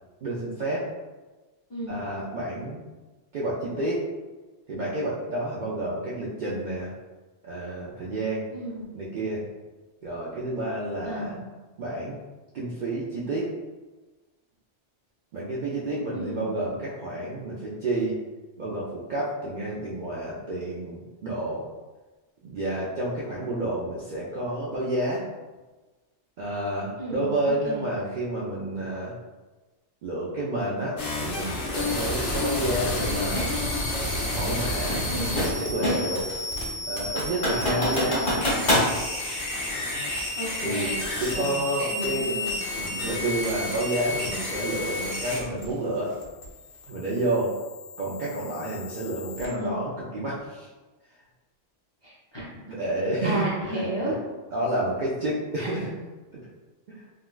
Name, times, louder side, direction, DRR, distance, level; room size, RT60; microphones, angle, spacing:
voice 1, 0.2-0.9 1.9-2.8 3.3-4.0 4.7-6.9 7.4-8.5 8.9-9.4 10.0-11.4 11.8-12.2 12.5-13.5 15.3-18.2 18.6-21.7 22.4-25.2 26.4-29.1 30.0-33.5 34.3-35.1 35.6-36.3 36.9-38.2 40.6-40.9 41.2-42.3 42.7-46.2 46.9-47.5 48.0-50.7 52.7-54.1 54.5-55.9 56.9-57.0, right 1 dB, 60° right, -6 dB, 0.5 m, -30 dB
voice 2, 1.7-2.0 8.5-8.9 11.0-11.4 16.1-16.5 27.0-27.3 27.7-27.8 32.7-32.8 35.1-35.4 38.3-38.6 40.4-40.9 41.3-41.6 41.9-42.5 49.4-49.7 52.0-52.4 53.2-54.2 55.6-55.7, equal, 30° left, -8 dB, 0.5 m, -33 dB
sound 1, 31.0-49.5, left 2 dB, 55° left, 0.8 m, -31 dB
sound 2, 33.3-33.6 34.9-36.2 36.6-36.7 37.2-38.9, left 1 dB, 80° left, 1.4 m, -25 dB
3.7 x 2.2 x 2.3 m, 1.2 s
omnidirectional pair, 1.2 m